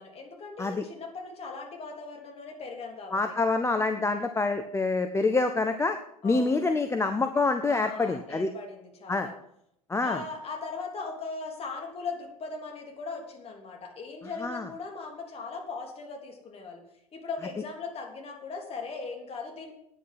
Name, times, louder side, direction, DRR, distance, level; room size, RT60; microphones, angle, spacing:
voice 1, 0.0-3.2 6.2-6.7 7.7-9.3 10.0-16.8 17.1-19.7, left 4 dB, 30° left, 2 dB, 3.4 m, -39 dB
voice 2, 3.1-6.0 6.2-8.5 9.1-9.3 9.9-10.2 14.4-14.7, left 3 dB, 15° left, 7 dB, 0.8 m, -26 dB
9.4 x 8.5 x 8.0 m, 0.75 s
figure-of-eight pair, 75°, 19 cm